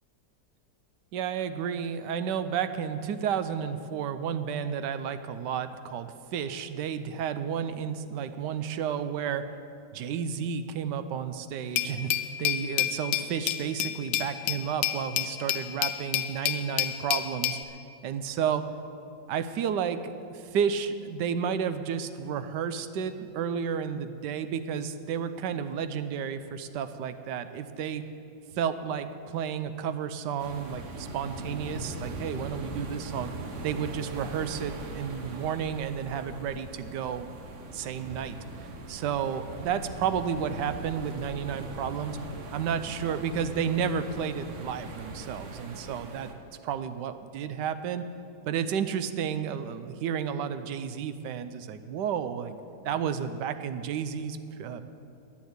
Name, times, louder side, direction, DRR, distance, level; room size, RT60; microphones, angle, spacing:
voice 1, 1.1-9.5 9.9-12.1 12.4-17.6 18.0-18.7 19.3-28.0 28.6-33.3 33.6-37.3 37.7-38.4 38.9-42.2 42.5-46.3 46.6-48.0 48.5-52.6 52.8-54.8, right 7 dB, 90° right, 11 dB, 1.3 m, -32 dB
Glass, 11.8-17.6, left 11 dB, 85° left, 1.3 m, -29 dB
sound 1, 30.4-46.3, right 2 dB, 50° right, 1.2 m, -40 dB
10.5 x 10.5 x 8.0 m, 2.6 s
omnidirectional pair, 1.8 m